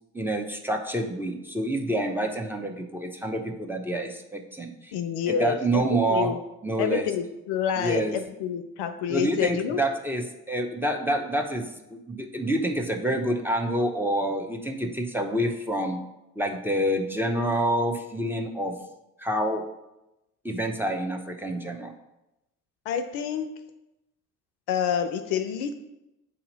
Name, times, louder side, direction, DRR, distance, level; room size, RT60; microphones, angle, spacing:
voice 1, 0.1-4.9 5.3-6.3 6.6-7.1 7.8-8.2 9.1-16.0 16.4-18.8 19.2-19.6 20.4-21.9, right 1 dB, 5° right, 3 dB, 0.7 m, -27 dB
voice 2, 4.9-6.4 6.8-9.8 22.9-23.5 24.7-25.7, left 8 dB, 60° left, 9 dB, 0.6 m, -28 dB
8.3 x 2.8 x 4.0 m, 0.93 s
figure-of-eight pair, 45°, 46 cm